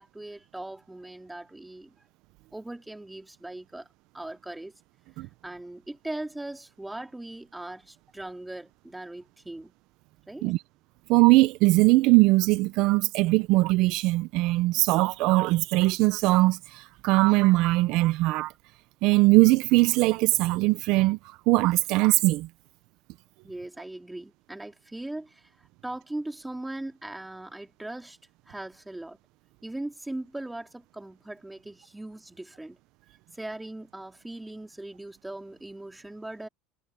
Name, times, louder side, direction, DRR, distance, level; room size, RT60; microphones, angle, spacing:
voice 1, 0.0-2.1 2.5-3.9 4.1-4.7 5.4-9.7 10.3-10.6 23.4-25.5 25.8-28.2 28.5-29.2 29.6-32.8 33.3-36.5, right 1 dB, 5° right, 3.8 m, -39 dB
voice 2, 11.1-18.5 19.0-21.2 21.5-22.5, right 21 dB, 60° right, 0.8 m, -21 dB
supercardioid pair, 110°, 0 cm